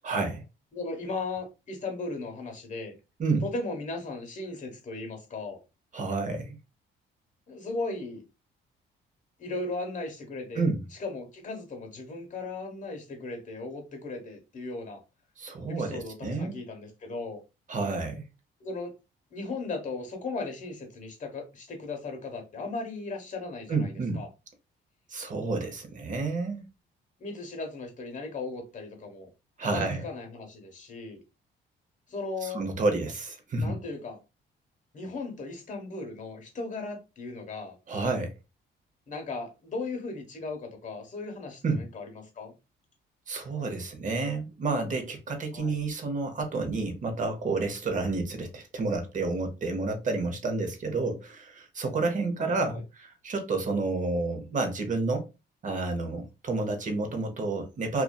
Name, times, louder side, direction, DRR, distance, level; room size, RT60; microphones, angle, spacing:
voice 1, 0.0-0.4 3.2-3.5 5.9-6.6 10.5-10.8 15.4-16.5 17.7-18.3 23.7-24.2 25.1-26.7 29.6-30.0 32.4-33.8 37.9-38.3 41.6-41.8 43.3-55.3 55.6-58.0, right 3 dB, 40° right, 0.7 m, -30 dB
voice 2, 0.7-3.0 3.4-5.6 7.5-8.2 9.4-10.7 11.0-15.0 15.7-17.4 18.6-18.9 19.3-24.3 27.2-29.3 29.6-31.2 32.1-32.6 33.6-34.2 34.9-37.8 39.1-42.5 45.5-45.8 52.4-52.8, left 3 dB, 40° left, 1.0 m, -37 dB
2.6 x 2.3 x 2.2 m
cardioid pair, 90°, 20 cm